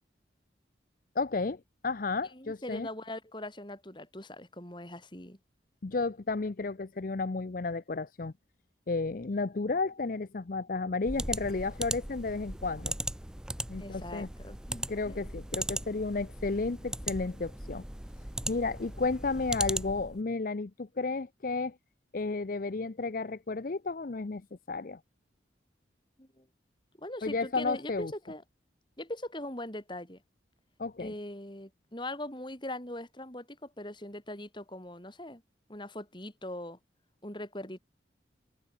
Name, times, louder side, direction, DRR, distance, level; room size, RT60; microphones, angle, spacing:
voice 1, 1.2-2.9 5.8-8.3 8.9-12.9 13.7-14.3 14.9-17.8 18.5-21.7 22.1-25.0 27.2-28.1 30.8-31.1, left 3 dB, 45° left, 0.6 m, -32 dB
voice 2, 2.3-5.4 13.8-15.2 26.2-26.4 27.0-28.4 29.0-30.2 31.0-35.4 35.7-36.8 37.2-37.8, left 1 dB, 25° left, 4.1 m, -41 dB
sound 1, 11.0-20.2, right 1 dB, 5° right, 0.4 m, -38 dB
open air
head